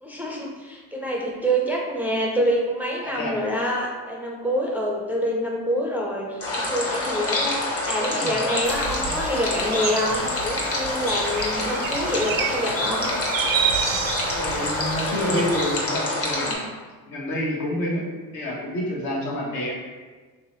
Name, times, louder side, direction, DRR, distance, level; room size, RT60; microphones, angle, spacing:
voice 1, 0.0-13.1, equal, 5° right, -2 dB, 0.5 m, -26 dB
voice 2, 3.0-3.3 9.1-9.2 14.3-16.7 17.1-19.7, left 1 dB, 65° left, -3 dB, 1.1 m, -28 dB
sound 1, 6.4-16.5, left 2 dB, 40° left, 1.0 m, -27 dB
sound 2, 8.6-15.8, right 7 dB, 60° right, 0.5 m, -30 dB
3.2 x 2.9 x 3.0 m, 1.4 s
supercardioid pair, 70°, 38 cm